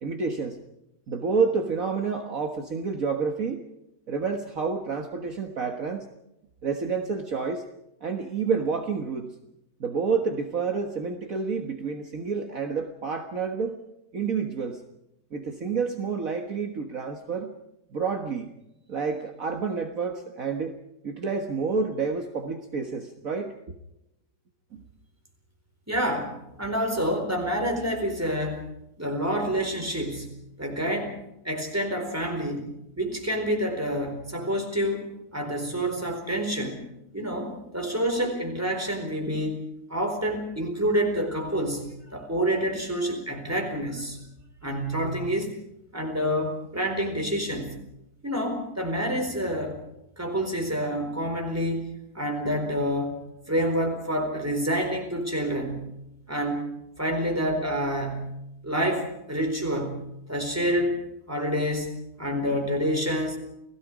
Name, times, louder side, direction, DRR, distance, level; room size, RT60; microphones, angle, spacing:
voice 1, 0.0-0.6 1.1-3.6 4.1-6.1 6.6-7.6 8.0-9.3 9.8-13.8 14.1-14.8 15.3-17.5 17.9-18.5 18.9-20.8 21.0-23.5 24.7-24.8, right 5 dB, 55° right, 4 dB, 1.9 m, -29 dB
voice 2, 25.9-26.3 26.6-28.6 29.0-30.3 30.6-31.2 31.4-36.8 37.1-39.6 39.9-44.2 44.6-45.6 45.9-47.7 48.2-49.8 50.2-53.2 53.5-55.9 56.3-56.7 57.0-58.3 58.6-60.0 60.3-61.9 62.2-63.4, equal, 10° right, 3 dB, 4.2 m, -28 dB
29.5 x 18.0 x 5.0 m, 0.85 s
omnidirectional pair, 1.8 m